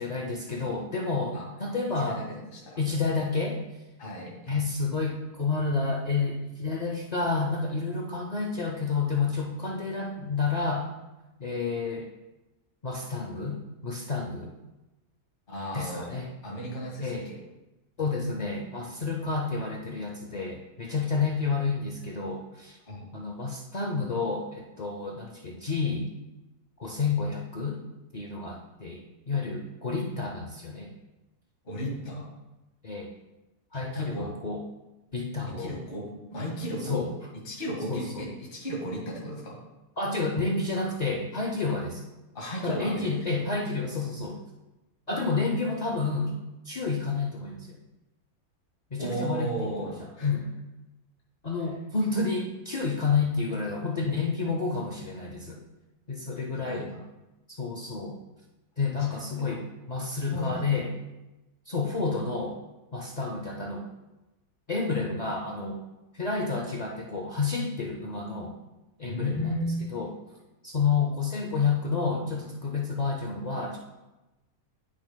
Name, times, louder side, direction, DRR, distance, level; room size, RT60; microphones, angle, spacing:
voice 1, 0.0-2.2 2.8-3.6 4.5-10.9 11.4-12.0 12.8-13.6 13.8-14.5 15.7-16.3 17.0-17.3 18.0-22.8 23.1-26.1 26.8-27.8 28.1-29.0 29.3-31.0 32.8-33.1 33.7-34.6 35.1-35.7 36.8-37.1 37.9-38.3 40.0-42.0 42.6-44.4 45.1-46.3 46.6-47.8 48.9-50.5 51.4-55.6 56.1-56.9 57.5-58.2 58.8-60.9 61.7-62.6 62.9-63.9 64.7-65.8 66.1-68.5 69.0-69.5 69.9-70.1 70.6-73.8, left 4 dB, 75° left, 0 dB, 0.3 m, -30 dB
voice 2, 4.0-4.5 15.5-16.1 16.4-17.4 22.9-23.1 31.6-32.3 33.9-34.3 35.5-37.0 37.4-39.6 40.8-40.9 41.7-41.8 42.3-43.3 49.0-50.3 56.5-57.0 59.0-59.2 60.3-60.8 69.0-69.8, equal, 35° left, -4 dB, 1.8 m, -34 dB
10.5 x 6.1 x 2.2 m, 1.0 s
omnidirectional pair, 1.7 m